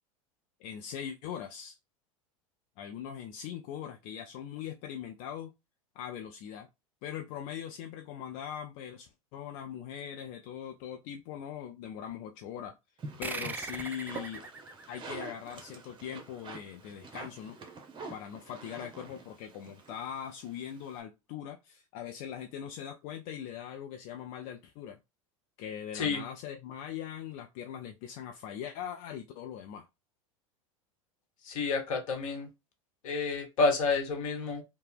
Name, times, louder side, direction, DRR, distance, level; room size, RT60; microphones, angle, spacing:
voice 1, 0.6-1.8 2.8-5.5 6.0-6.7 7.0-12.7 13.2-14.5 14.9-17.6 18.1-25.0 25.6-29.9, left 9 dB, 50° left, 0.5 m, -41 dB
sound 1, 13.0-21.0, right 4 dB, 25° right, 0.8 m, -46 dB
sound 2, 13.2-16.3, right 4 dB, 10° right, 0.3 m, -41 dB
voice 2, 31.4-32.5 33.0-34.6, left 4 dB, 70° left, 1.0 m, -29 dB
2.8 x 2.1 x 3.3 m
hypercardioid pair, 90°, 18 cm